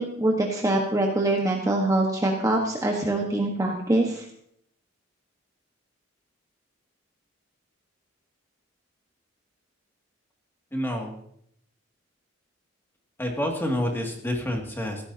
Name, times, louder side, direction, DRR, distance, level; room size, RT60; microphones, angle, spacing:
voice 1, 0.0-4.2, right 1 dB, 15° right, 0 dB, 1.3 m, -24 dB
voice 2, 10.7-11.2 13.2-15.0, left 1 dB, 10° left, 0 dB, 2.3 m, -28 dB
16.5 x 13.5 x 2.8 m, 0.69 s
head